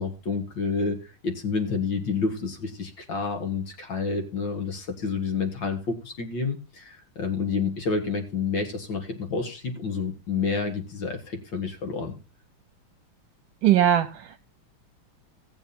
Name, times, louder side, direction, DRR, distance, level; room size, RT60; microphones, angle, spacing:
voice 1, 0.0-12.2, left 4 dB, 60° left, 2.4 m, -29 dB
voice 2, 13.6-14.4, right 11 dB, 70° right, 1.5 m, -20 dB
16.5 x 7.3 x 4.2 m
omnidirectional pair, 2.3 m